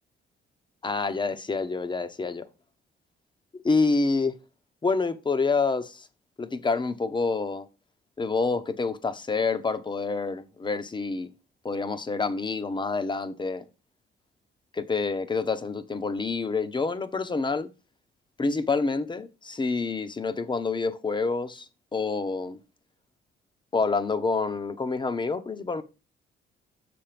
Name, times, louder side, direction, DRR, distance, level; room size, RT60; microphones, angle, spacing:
voice 1, 0.8-2.5 3.6-4.4 4.8-6.1 6.4-7.7 8.2-11.3 11.6-13.6 14.7-17.7 18.4-21.7 21.9-22.6 23.7-25.8, left 4 dB, 25° left, 1.0 m, -27 dB
6.6 x 6.0 x 5.1 m
cardioid pair, 90°, 20 cm